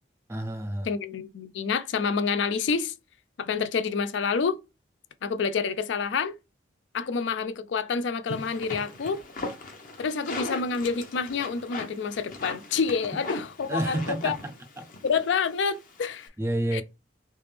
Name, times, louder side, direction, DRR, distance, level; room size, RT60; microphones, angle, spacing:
voice 1, 0.3-0.9 13.7-14.5 14.8-14.9 16.4-16.8, right 1 dB, 15° right, 0.4 m, -29 dB
voice 2, 0.9-2.9 3.4-4.6 5.2-6.3 6.9-9.2 10.0-14.4 15.0-16.3 16.7-16.8, left 5 dB, 75° left, 0.4 m, -28 dB
sound 1, 8.3-16.3, left 2 dB, 45° left, 0.8 m, -39 dB
3.3 x 2.9 x 3.2 m
head